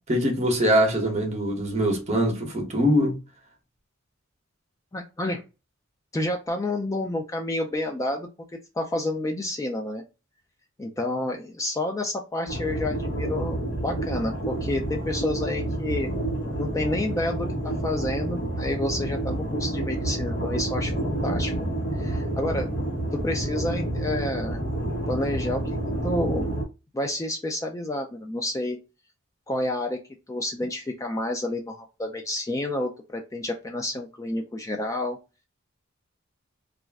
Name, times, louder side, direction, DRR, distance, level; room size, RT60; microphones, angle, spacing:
voice 1, 0.1-3.2, equal, 35° right, 0.9 m, -23 dB
voice 2, 4.9-5.4 6.1-8.3 8.7-10.0 10.8-16.1 16.6-22.7 23.1-24.6 25.1-25.8 26.0-26.5 26.9-28.8 29.5-30.0 30.3-35.2, left 1 dB, 15° left, 0.3 m, -29 dB
sound 1, 12.5-26.6, right 1 dB, 55° left, 1.0 m, -29 dB
2.4 x 2.1 x 3.4 m
head